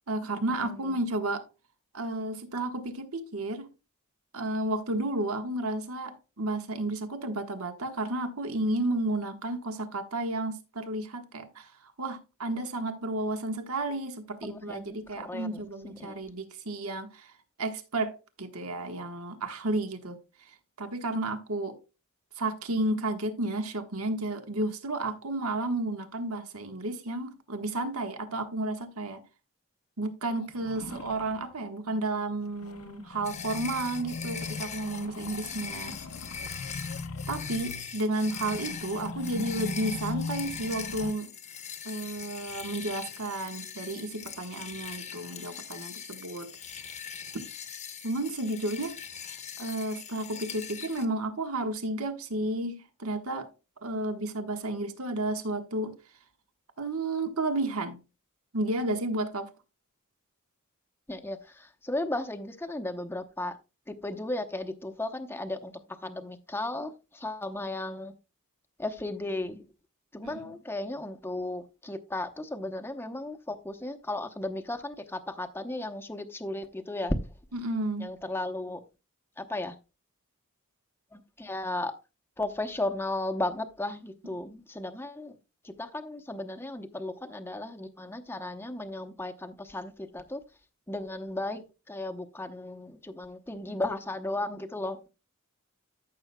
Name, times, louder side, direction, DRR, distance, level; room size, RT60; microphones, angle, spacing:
voice 1, 0.1-1.5 1.9-3.7 4.3-11.7 12.0-17.3 17.6-20.2 20.8-21.8 22.4-29.2 30.0-35.9 37.3-41.3 41.8-46.5 47.3-47.4 48.0-48.9 49.6-53.5 53.8-55.9 56.8-58.0 58.5-59.5 70.2-70.3 77.5-78.1, right 2 dB, 70° right, 1.3 m, -32 dB
voice 2, 0.6-1.0 14.4-16.2 61.1-63.6 63.9-68.1 68.8-69.7 70.1-77.3 78.0-78.8 79.4-79.8 81.1-81.9 82.4-85.4 85.6-90.4 90.9-95.0, left 2 dB, 10° left, 0.8 m, -35 dB
sound 1, 30.4-31.5 32.5-41.1, left 3 dB, 70° left, 0.8 m, -39 dB
sound 2, 33.2-51.0, left 7 dB, 30° left, 1.0 m, -41 dB
14.0 x 6.8 x 2.2 m
head